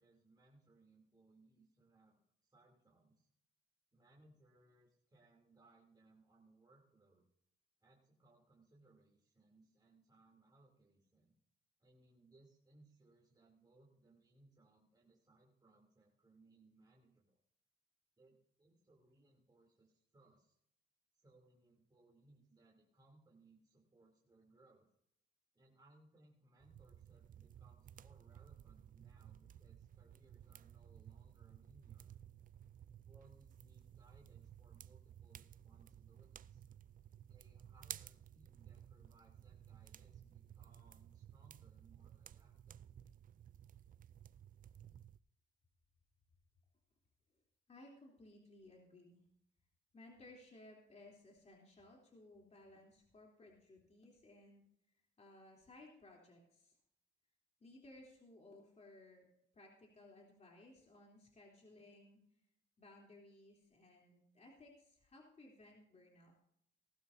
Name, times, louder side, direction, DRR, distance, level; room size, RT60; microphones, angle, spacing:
voice 1, 0.0-3.3 3.9-7.3 7.8-11.4 11.8-17.4 18.2-20.5 21.1-24.9 25.5-32.1 32.9-36.6 37.3-42.9, right 2 dB, 20° right, -3 dB, 3.1 m, -68 dB
sound 1, 26.6-45.2, right 10 dB, 45° right, 0.4 m, -56 dB
voice 2, 47.7-49.2 49.9-54.6 55.2-56.7 57.6-59.2 59.5-62.2 62.8-66.3, left 2 dB, 35° left, -1 dB, 3.4 m, -60 dB
18.5 x 12.5 x 2.7 m, 0.74 s
cardioid pair, 90°, 20 cm